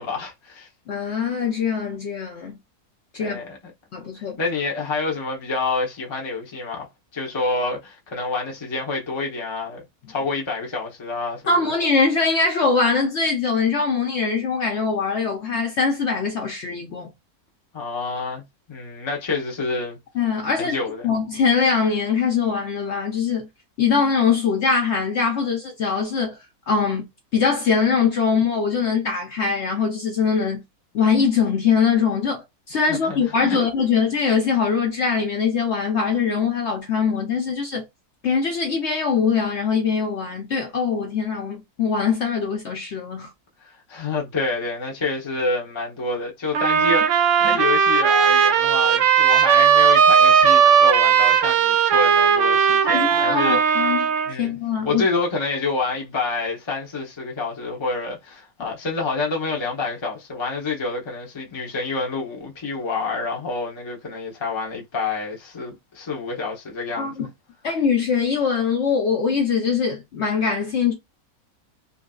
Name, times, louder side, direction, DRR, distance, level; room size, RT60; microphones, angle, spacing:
voice 1, 0.0-0.7 3.2-3.6 4.4-6.9 7.1-11.7 17.7-20.0 20.5-21.1 32.9-33.6 43.9-53.6 54.3-67.3, left 3 dB, 25° left, 0.7 m, -28 dB
voice 2, 0.9-2.6 3.1-3.4 3.9-4.4 11.5-17.1 20.1-20.8 21.0-23.5 23.8-26.4 26.7-27.1 27.3-30.6 30.9-37.8 38.2-43.3 52.8-54.1 54.4-55.0 67.0-67.3 67.6-70.9, left 5 dB, 55° left, 0.9 m, -22 dB
sound 1, 46.5-54.3, right 7 dB, 65° right, 0.8 m, -17 dB
3.5 x 2.7 x 2.3 m
omnidirectional pair, 1.6 m